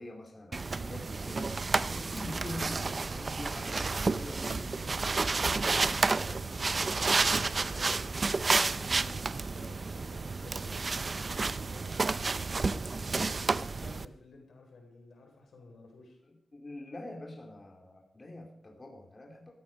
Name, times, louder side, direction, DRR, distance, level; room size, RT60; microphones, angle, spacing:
voice 1, 0.0-5.5 8.9-9.3 16.5-19.5, left 1 dB, 35° left, 1 dB, 2.9 m, -45 dB
sound 1, 0.5-14.1, right 3 dB, 45° right, 0.6 m, -31 dB
voice 2, 5.9-8.1 9.3-13.3 13.8-16.2, left 3 dB, 80° left, 3 dB, 4.4 m, -53 dB
15.0 x 13.5 x 5.3 m, 0.78 s
wide cardioid pair, 85°, 0 cm